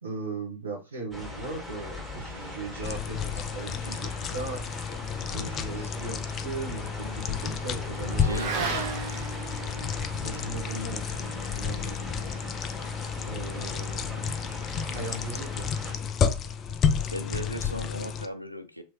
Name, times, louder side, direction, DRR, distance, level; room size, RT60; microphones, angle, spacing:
voice 1, 0.0-4.6 5.3-8.9 10.2-11.0 11.6-12.0 13.2-14.3 14.9-15.7, right 4 dB, 75° right, 0 dB, 1.1 m, -38 dB
sound 1, 1.1-15.9, left 2 dB, 5° right, 1.5 m, -40 dB
sound 2, 2.8-18.3, left 6 dB, 30° left, 0.4 m, -31 dB
Motorcycle / Accelerating revving vroom, 5.5-14.3, right 4 dB, 50° right, 0.7 m, -39 dB
voice 2, 8.1-8.6 17.1-18.8, equal, 90° left, 8 dB, 0.4 m, -36 dB
3.0 x 3.0 x 2.8 m, 0.29 s
figure-of-eight pair, 90°, 0 cm